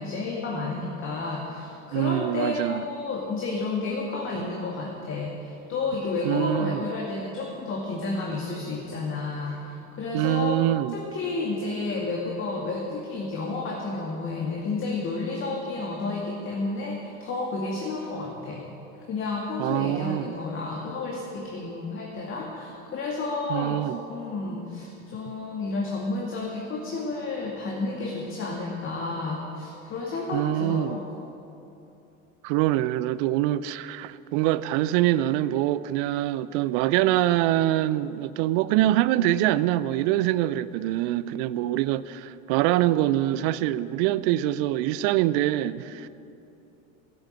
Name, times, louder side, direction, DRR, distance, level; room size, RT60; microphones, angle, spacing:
voice 1, 0.0-10.6 10.9-18.6 19.1-31.0, left 3 dB, 30° left, 2.2 m, -31 dB
voice 2, 1.9-2.9 6.2-6.9 10.1-11.0 19.6-20.3 23.5-24.0 30.3-31.0 32.4-46.1, right 14 dB, 40° right, 0.6 m, -24 dB
15.5 x 9.0 x 9.0 m
figure-of-eight pair, 80°, 41 cm